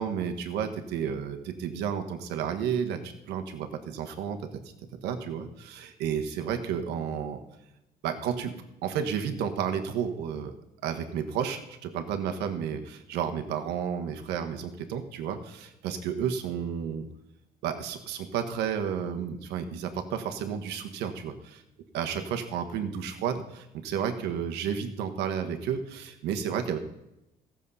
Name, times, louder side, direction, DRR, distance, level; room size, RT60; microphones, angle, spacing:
voice 1, 0.0-4.5 5.0-7.4 8.0-8.5 8.8-10.5 10.8-17.1 17.6-21.6 21.9-26.8, right 8 dB, 85° right, 6 dB, 1.3 m, -32 dB
15.0 x 7.3 x 5.5 m, 0.90 s
cardioid pair, 110°, 17 cm